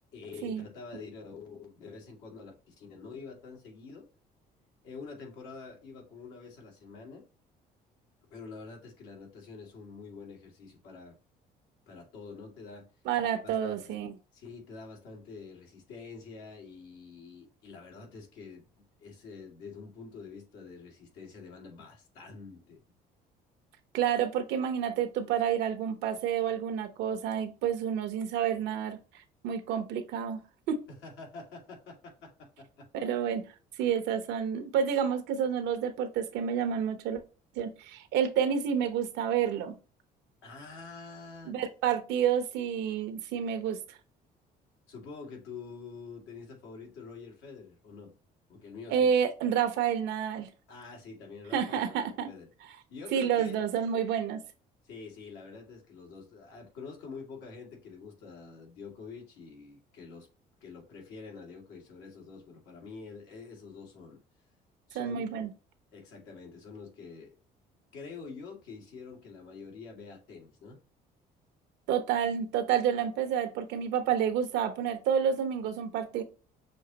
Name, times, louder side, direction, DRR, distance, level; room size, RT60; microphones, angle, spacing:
voice 1, 0.1-4.1 4.8-7.2 8.3-11.2 11.9-12.9 13.4-14.0 14.3-22.8 30.9-32.9 40.4-41.6 44.9-48.1 48.5-49.1 50.7-52.5 52.9-53.7 54.8-60.3 60.6-64.2 64.9-65.3 65.9-67.4 67.9-70.8, left 4 dB, 90° left, 2.0 m, -46 dB
voice 2, 13.1-14.1 23.9-29.0 29.4-30.4 30.7-30.8 32.9-33.4 33.8-37.2 37.6-39.8 41.4-43.8 48.9-50.5 51.5-52.3 53.1-54.4 64.9-65.5 71.9-76.2, right 8 dB, 85° right, 0.9 m, -29 dB
6.4 x 2.9 x 2.8 m
cardioid pair, 110°, 17 cm